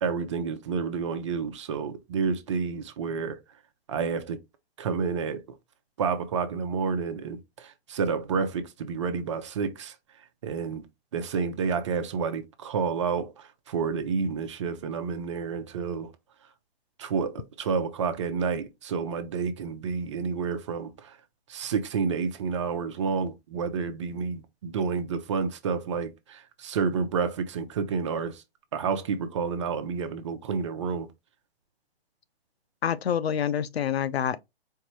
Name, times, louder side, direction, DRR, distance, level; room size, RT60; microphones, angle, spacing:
voice 1, 0.0-3.4 3.9-4.4 4.8-5.4 6.0-9.9 10.4-10.9 11.1-16.1 17.0-21.2 21.5-28.4 28.7-31.1, right 5 dB, 30° right, 0.5 m, -29 dB
voice 2, 32.8-34.4, left 8 dB, 80° left, 0.6 m, -27 dB
4.5 x 2.5 x 3.0 m
hypercardioid pair, 150°, 31 cm